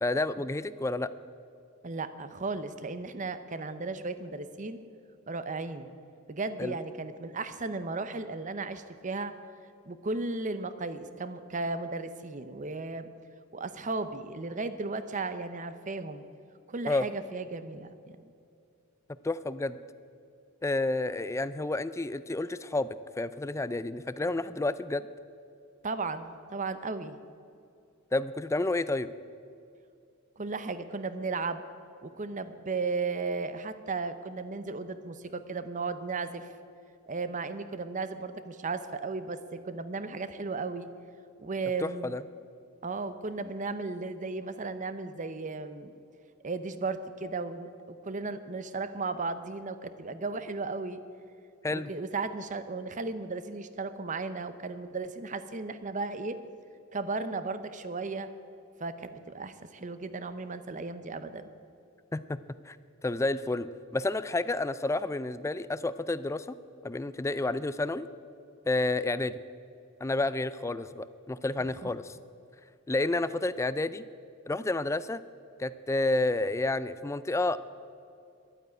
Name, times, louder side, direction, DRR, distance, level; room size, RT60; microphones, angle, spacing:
voice 1, 0.0-1.1 6.6-6.8 16.9-17.1 19.2-19.8 20.6-22.9 23.2-25.1 28.1-29.1 41.8-42.2 51.6-51.9 62.1-62.4 62.7-62.8 63.0-66.6 66.8-68.1 68.7-69.4 70.0-72.2 72.9-74.0 74.5-75.2 75.6-77.6, left 2 dB, 15° left, 15 dB, 0.3 m, -30 dB
voice 2, 1.8-4.8 5.3-5.9 6.3-9.3 9.9-13.1 13.5-16.2 16.7-18.3 25.8-27.2 30.4-31.6 32.0-36.5 37.1-40.9 41.4-42.1 42.8-45.9 46.4-51.0 51.7-56.4 56.9-58.3 58.8-61.5 71.8-71.9, right 3 dB, 35° right, 11 dB, 0.7 m, -35 dB
11.5 x 9.0 x 9.4 m, 2.5 s
head